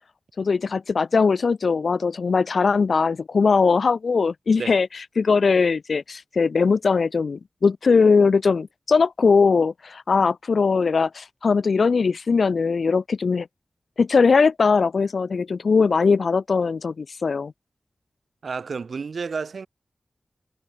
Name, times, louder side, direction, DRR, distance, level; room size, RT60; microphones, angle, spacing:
voice 1, 0.4-13.5 14.0-17.5, left 5 dB, 85° left, 0.3 m, -20 dB
voice 2, 18.4-19.7, right 5 dB, 90° right, 4.9 m, -31 dB
cardioid pair, 50°, 0 cm